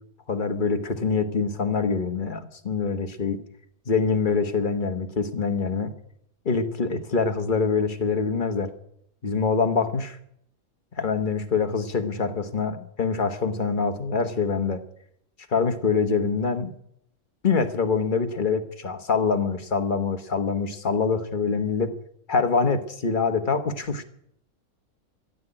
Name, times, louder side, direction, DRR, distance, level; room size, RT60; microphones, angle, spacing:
voice 1, 0.3-3.4 3.9-5.9 6.4-8.7 9.2-10.2 11.0-14.8 15.5-16.7 17.4-21.9 22.3-24.0, left 5 dB, 35° left, 7 dB, 1.2 m, -25 dB
14.0 x 8.2 x 9.9 m, 0.71 s
omnidirectional pair, 1.5 m